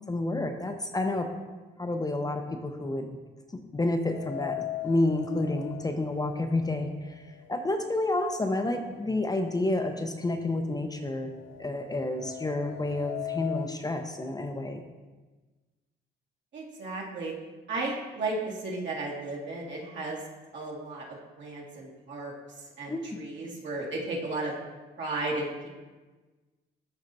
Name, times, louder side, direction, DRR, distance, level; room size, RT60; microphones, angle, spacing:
voice 1, 0.1-1.3 1.8-3.2 3.5-7.1 7.5-11.3 11.6-14.8 22.9-23.2, left 2 dB, 20° left, 5 dB, 0.6 m, -30 dB
sound 1, 4.0-8.1 8.4-8.5 9.5-9.6 10.0-13.8, left 14 dB, 70° left, 0.4 m, -40 dB
voice 2, 16.5-17.3 17.7-20.2 20.5-24.5 25.0-25.7, right 2 dB, 65° right, -4 dB, 2.0 m, -34 dB
12.5 x 4.3 x 2.7 m, 1.3 s
cardioid pair, 90°, 20 cm